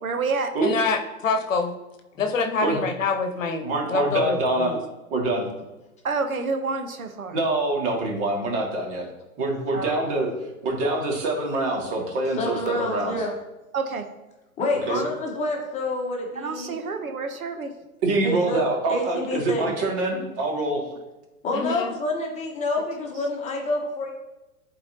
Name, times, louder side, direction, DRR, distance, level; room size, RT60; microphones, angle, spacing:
voice 1, 0.0-0.5 6.0-7.4 9.7-10.0 13.7-14.1 14.8-15.3 16.3-17.7, right 4 dB, 75° right, 6 dB, 1.0 m, -29 dB
voice 2, 0.6-1.7 2.2-4.8 21.5-21.9, left 4 dB, 65° left, 6 dB, 1.0 m, -26 dB
voice 3, 3.6-4.7 5.1-5.4 7.3-9.1 9.4-10.3 10.6-13.1 14.9-15.0 18.0-20.9, right 2 dB, 40° right, 0 dB, 2.2 m, -25 dB
voice 4, 12.3-13.3 14.6-16.7 18.2-18.6 18.9-19.7 21.4-24.1, left 2 dB, 15° left, 0 dB, 1.2 m, -28 dB
11.5 x 4.3 x 2.9 m, 1.0 s
figure-of-eight pair, 110°, 43 cm